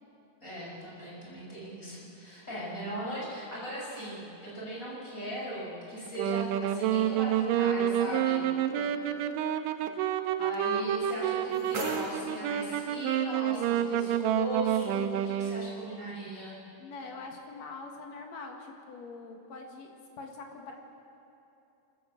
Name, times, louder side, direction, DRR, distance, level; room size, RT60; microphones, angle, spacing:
voice 1, 0.4-8.4 10.4-16.6, right 1 dB, 20° left, -5 dB, 6.0 m, -38 dB
Wind instrument woodwind instrument, 6.1-15.8, right 10 dB, 80° right, 2.4 m, -29 dB
sound 1, 11.0-13.0, equal, 60° right, 4.9 m, -41 dB
voice 2, 16.8-20.7, left 3 dB, 55° left, 2 dB, 3.0 m, -44 dB
24.5 x 14.5 x 7.7 m, 2.8 s
omnidirectional pair, 3.9 m